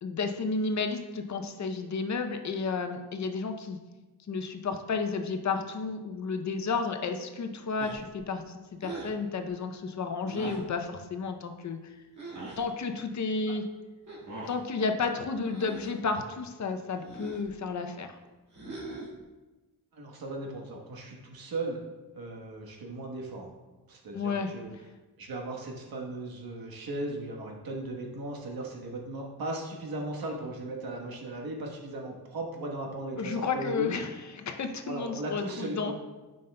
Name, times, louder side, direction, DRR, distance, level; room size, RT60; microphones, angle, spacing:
voice 1, 0.0-3.8 4.3-12.0 12.6-13.6 14.5-18.1 24.1-24.5 33.2-35.9, left 4 dB, 50° left, 6 dB, 0.6 m, -32 dB
sound 1, 7.8-8.2 8.8-9.2 10.2-10.7 12.2-12.6 14.1-14.6 15.4-16.0 17.0-17.5 18.5-19.2, right 2 dB, 50° right, 1.8 m, -41 dB
voice 2, 19.9-21.8 22.1-23.5 23.9-24.7 25.2-33.9 34.8-35.9, right 2 dB, 70° right, 0 dB, 1.2 m, -37 dB
9.0 x 5.4 x 2.2 m, 1.2 s
wide cardioid pair, 120°, 37 cm